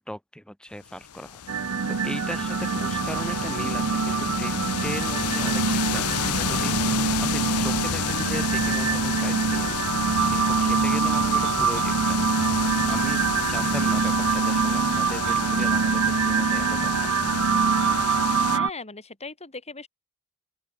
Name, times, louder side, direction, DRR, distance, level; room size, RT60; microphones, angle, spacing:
voice 1, 0.0-9.8 10.3-12.2 12.8-13.2 13.5-17.1, equal, 5° left, 3.2 m, -38 dB
sound 1, 1.0-18.6, left 8 dB, 85° left, 0.8 m, -31 dB
sound 2, 1.5-18.7, right 6 dB, 75° right, 0.7 m, -24 dB
voice 2, 18.5-19.9, left 3 dB, 30° left, 5.9 m, -38 dB
open air
head